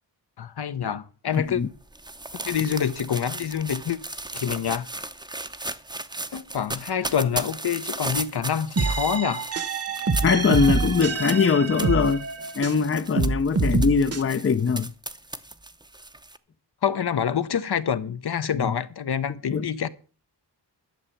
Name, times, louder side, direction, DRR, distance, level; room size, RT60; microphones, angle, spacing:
voice 1, 0.4-1.6 2.4-4.0 4.3-4.9 6.3-9.4 16.8-19.9, left 8 dB, 65° left, 0.9 m, -26 dB
sound 1, 1.3-16.4, right 2 dB, 10° right, 0.7 m, -36 dB
sound 2, 8.8-12.8 13.2-14.2, right 4 dB, 35° right, 1.0 m, -26 dB
voice 2, 10.2-12.3 12.5-14.9 18.6-18.7 19.5-19.7, left 5 dB, 30° left, 0.6 m, -22 dB
12.0 x 6.8 x 8.3 m
wide cardioid pair, 145°, 41 cm